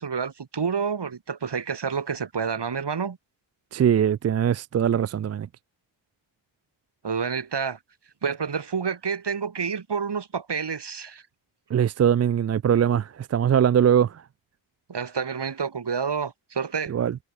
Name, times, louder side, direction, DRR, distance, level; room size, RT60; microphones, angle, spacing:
voice 1, 0.0-3.2 7.0-7.8 8.2-11.2 14.9-16.9, right 6 dB, 60° right, 4.9 m, -29 dB
voice 2, 3.7-5.5 11.7-14.2 16.9-17.2, right 9 dB, 35° right, 0.4 m, -21 dB
cardioid pair, 65°, 47 cm